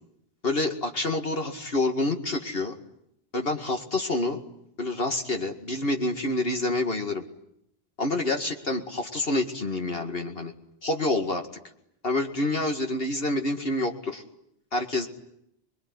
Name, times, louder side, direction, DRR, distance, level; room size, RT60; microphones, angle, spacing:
voice 1, 0.4-2.7 3.3-4.4 4.8-7.2 8.0-10.5 10.8-11.4 12.0-14.2 14.7-15.1, left 2 dB, 65° left, 4 dB, 2.4 m, -27 dB
27.0 x 22.5 x 9.8 m, 0.75 s
omnidirectional pair, 1.1 m